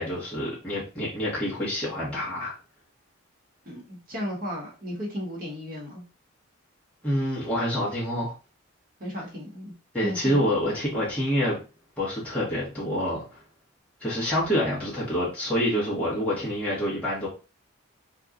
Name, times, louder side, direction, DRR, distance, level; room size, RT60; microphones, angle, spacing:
voice 1, 0.0-2.5 7.0-8.3 9.9-11.6 12.0-13.4 14.0-17.3, equal, 5° left, -9 dB, 1.1 m, -27 dB
voice 2, 3.6-6.0 9.0-9.7 10.0-10.4, equal, 40° right, -2 dB, 1.1 m, -34 dB
2.7 x 2.3 x 3.6 m, 0.32 s
head